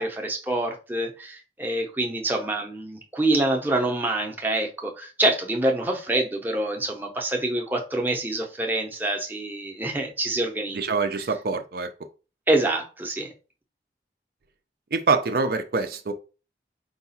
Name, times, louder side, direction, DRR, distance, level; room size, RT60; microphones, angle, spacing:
voice 1, 0.0-10.9 12.5-13.3, right 2 dB, 10° right, 0.7 m, -26 dB
voice 2, 10.7-11.9 14.9-16.1, right 4 dB, 55° right, 0.5 m, -25 dB
4.6 x 2.4 x 4.1 m
head